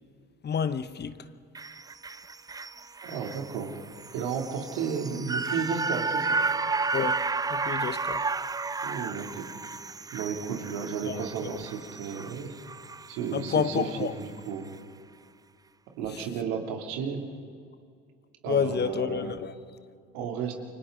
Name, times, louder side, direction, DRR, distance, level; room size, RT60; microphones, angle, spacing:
voice 1, 0.4-1.2 6.9-7.2 7.5-8.2 11.0-11.5 13.3-14.1 16.1-16.2 18.5-19.5, left 7 dB, 35° left, 1.0 m, -29 dB
sound 1, 1.5-13.9 14.2-14.3, right 4 dB, 15° right, 0.4 m, -33 dB
voice 2, 3.0-3.7 4.1-6.4 8.8-9.5 10.1-12.5 13.1-14.7 16.0-17.2 18.4-19.4 20.1-20.5, right 6 dB, 75° right, 2.9 m, -33 dB
29.5 x 24.5 x 3.9 m
hypercardioid pair, 70°, 30 cm